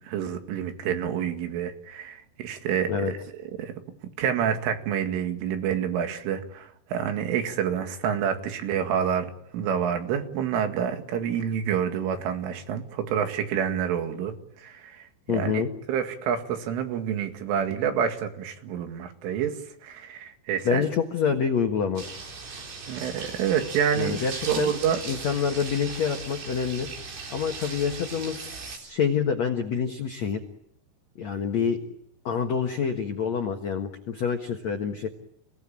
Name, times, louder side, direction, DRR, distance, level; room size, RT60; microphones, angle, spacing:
voice 1, 0.0-3.2 3.6-3.7 4.2-9.3 9.5-15.1 15.3-15.6 15.9-20.9 22.9-25.0, right 8 dB, 80° right, 6 dB, 4.5 m, -28 dB
voice 2, 15.3-15.7 20.6-22.0 24.0-24.7 25.1-26.9 27.3-30.4 31.2-31.8 32.2-35.1, left 6 dB, 80° left, 5 dB, 1.5 m, -27 dB
sound 1, 22.0-28.8, right 4 dB, 55° right, 5.7 m, -38 dB
30.0 x 18.0 x 8.8 m, 0.75 s
omnidirectional pair, 5.6 m